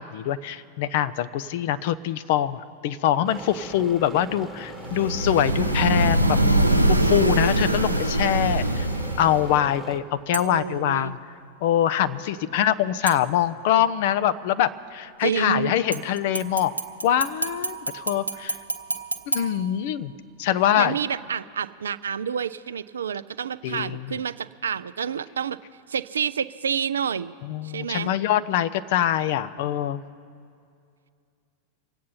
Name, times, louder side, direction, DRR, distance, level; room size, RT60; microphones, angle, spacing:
voice 1, 0.0-6.4 6.9-8.9 9.2-11.2 11.6-16.7 17.0-18.6 19.3-20.1 20.4-21.0 23.6-24.2 27.4-30.0, left 11 dB, 50° left, 14 dB, 0.6 m, -24 dB
sound 1, 3.3-10.0, right 1 dB, ahead, 1.2 m, -40 dB
sound 2, 4.9-9.6, right 1 dB, 90° left, 0.8 m, -22 dB
sound 3, 10.3-10.8 13.1-13.8 15.9-20.3 20.7-20.8, right 2 dB, 85° right, 0.8 m, -32 dB
voice 2, 10.4-11.1 15.2-15.7 20.8-25.6 25.9-27.3 27.6-28.1, right 7 dB, 70° right, 15 dB, 0.4 m, -29 dB
25.0 x 8.6 x 5.6 m, 2.3 s
figure-of-eight pair, 90°, 0 cm